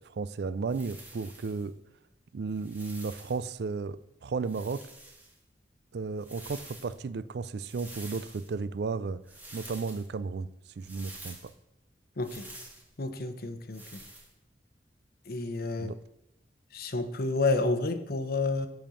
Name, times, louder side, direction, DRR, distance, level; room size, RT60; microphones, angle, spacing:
voice 1, 0.0-1.7 2.3-4.8 5.9-9.2 9.5-10.5 10.8-11.5 15.8-16.0, right 4 dB, 65° right, 16 dB, 0.4 m, -34 dB
sound 1, 0.7-1.6 2.5-3.5 4.4-5.4 6.1-7.0 7.6-8.5 9.3-10.1 10.8-11.5 12.2-12.9 13.7-14.3, right 1 dB, 10° right, 1.6 m, -48 dB
voice 2, 12.2-12.5 13.0-14.0 15.3-15.9 16.7-18.7, left 3 dB, 60° left, 9 dB, 0.9 m, -30 dB
7.8 x 5.3 x 6.8 m, 0.84 s
head